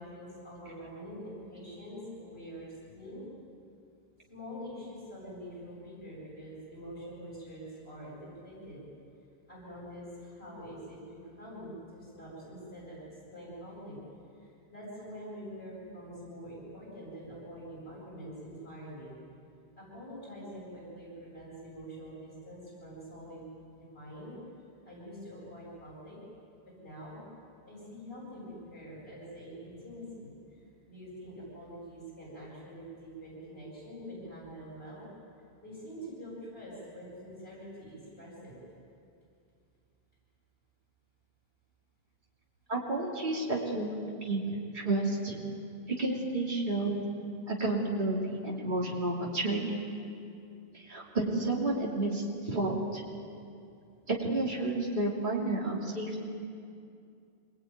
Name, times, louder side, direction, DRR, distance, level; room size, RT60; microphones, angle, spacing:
voice 1, 0.0-3.3 4.3-8.8 9.5-13.0 13.3-14.0 14.4-19.1 19.8-23.5 23.7-24.4 24.8-26.2 26.8-27.2 27.7-35.1 35.6-38.5, equal, 70° left, -6 dB, 8.4 m, -45 dB
voice 2, 42.7-45.4 46.0-47.0 47.5-49.6 50.7-53.0 54.1-56.2, right 2 dB, 50° right, -4 dB, 3.2 m, -31 dB
26.5 x 20.0 x 9.5 m, 2.5 s
omnidirectional pair, 1.1 m